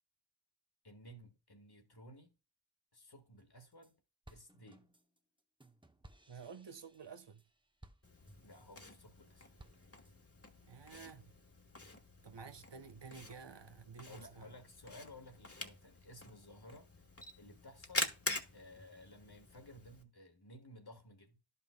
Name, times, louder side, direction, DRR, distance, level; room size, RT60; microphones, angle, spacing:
voice 1, 0.8-2.3 2.9-3.9 4.3-4.9 8.4-9.5 14.1-17.0 17.4-18.1 18.5-21.4, left 1 dB, 60° left, 1.6 m, -56 dB
sound 1, 3.4-3.9 4.3-8.8 9.2-10.1, right 1 dB, 10° right, 0.7 m, -61 dB
voice 2, 6.3-7.4 10.6-11.4 12.2-14.5, right 6 dB, 70° right, 0.8 m, -51 dB
Camera, 8.0-20.0, left 2 dB, 30° left, 1.2 m, -46 dB
12.0 x 5.5 x 2.2 m
wide cardioid pair, 45°, 44 cm